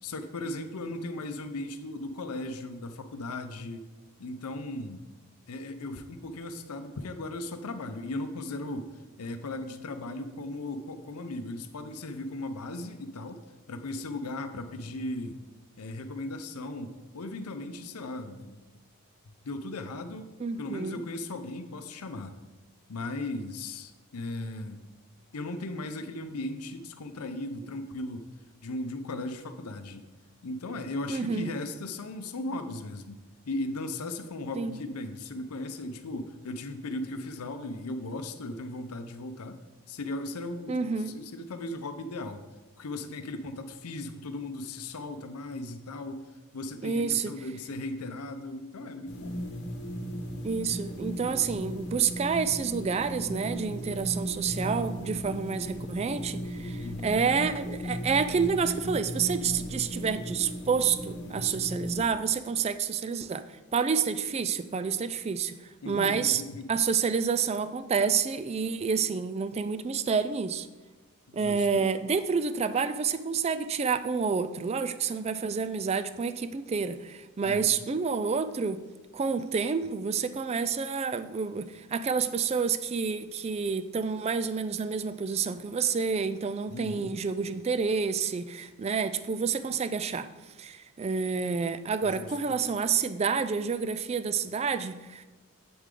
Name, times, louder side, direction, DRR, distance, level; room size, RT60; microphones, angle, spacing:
voice 1, 0.0-3.9 4.2-5.1 5.5-13.4 13.7-15.4 15.8-18.6 19.4-20.3 20.6-22.3 22.9-24.8 25.3-28.3 28.6-30.0 30.4-39.6 39.9-42.4 42.8-49.4 56.8-57.1 65.8-66.7 71.3-71.7 77.4-77.7 86.7-87.1 92.0-92.3, left 2 dB, 85° left, 8 dB, 0.6 m, -37 dB
voice 2, 20.4-21.0 31.1-31.5 34.6-34.8 40.7-41.1 46.8-47.3 50.4-63.4 63.7-65.5 65.9-66.4 66.7-70.7 71.3-78.8 79.1-90.3 90.6-95.2, right 5 dB, 30° right, 12 dB, 0.3 m, -29 dB
sound 1, 49.1-62.1, equal, 50° left, 1.3 m, -36 dB
8.2 x 7.9 x 3.7 m, 1.2 s
head